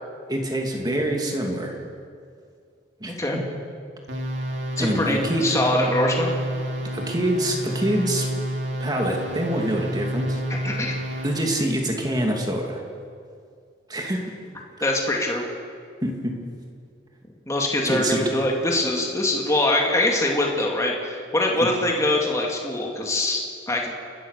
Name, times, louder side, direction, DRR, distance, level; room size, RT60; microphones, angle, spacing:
voice 1, 0.3-1.7 3.0-3.4 4.8-5.4 6.9-8.3 8.8-10.4 11.2-12.8 13.9-14.2 16.0-16.3 17.9-18.2 21.6-21.7, right 1 dB, 20° right, 1 dB, 2.7 m, -25 dB
voice 2, 3.0-3.4 4.8-6.3 10.6-11.0 14.8-15.4 17.5-23.9, left 1 dB, 15° left, 0 dB, 2.4 m, -23 dB
sound 1, 4.1-11.6, equal, 75° right, 3.1 m, -30 dB
29.0 x 14.0 x 6.8 m, 2.2 s
head